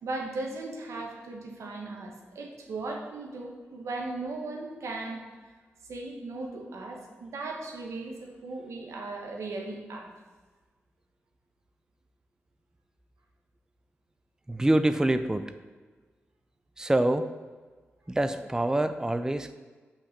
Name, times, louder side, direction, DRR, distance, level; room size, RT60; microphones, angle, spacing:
voice 1, 0.0-5.2 5.9-10.1, right 2 dB, 85° right, 1 dB, 1.4 m, -37 dB
voice 2, 14.5-15.5 16.8-17.3 18.1-19.5, right 1 dB, 15° right, 10 dB, 0.5 m, -25 dB
5.9 x 5.6 x 6.6 m, 1.4 s
cardioid pair, 55°, 5 cm